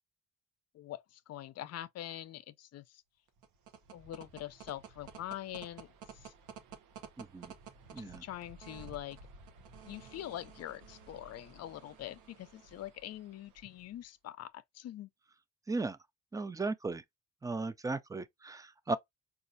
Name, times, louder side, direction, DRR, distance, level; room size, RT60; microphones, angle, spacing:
voice 1, 0.7-3.0 3.9-6.3 8.0-9.2 9.8-15.1, left 12 dB, 55° left, 0.5 m, -44 dB
sound 1, 3.3-14.1, right 5 dB, 90° right, 0.7 m, -53 dB
voice 2, 7.2-7.5 7.9-8.2 15.7-16.0 16.3-17.0 17.4-19.0, right 3 dB, 10° right, 0.4 m, -36 dB
4.1 x 2.4 x 2.6 m
cardioid pair, 90°, 30 cm